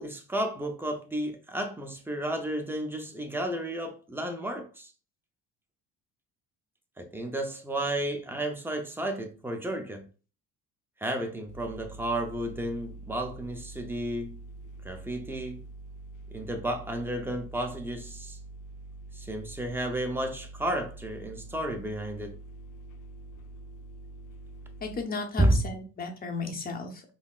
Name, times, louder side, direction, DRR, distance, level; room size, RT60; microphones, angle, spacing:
voice 1, 0.0-4.9 7.0-10.1 11.0-14.4 14.8-15.6 16.3-18.4 19.1-22.4 25.4-25.6, right 1 dB, 5° right, 0.5 m, -32 dB
sound 1, 11.5-25.0, right 2 dB, 60° left, 0.5 m, -45 dB
voice 2, 24.8-27.0, left 3 dB, 25° left, 0.8 m, -34 dB
5.4 x 2.0 x 2.4 m
cardioid pair, 115°, 35 cm